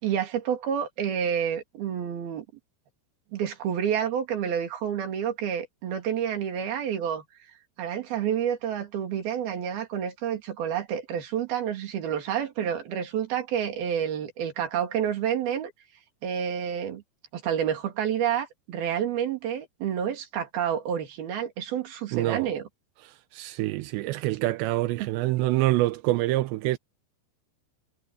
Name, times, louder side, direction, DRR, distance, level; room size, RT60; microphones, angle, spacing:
voice 1, 0.0-2.5 3.3-7.2 7.8-15.7 16.2-17.0 17.3-22.7 25.0-25.1, right 9 dB, 55° right, 4.1 m, -29 dB
voice 2, 22.1-22.5 23.0-26.8, right 17 dB, 80° right, 2.7 m, -26 dB
omnidirectional pair, 5.6 m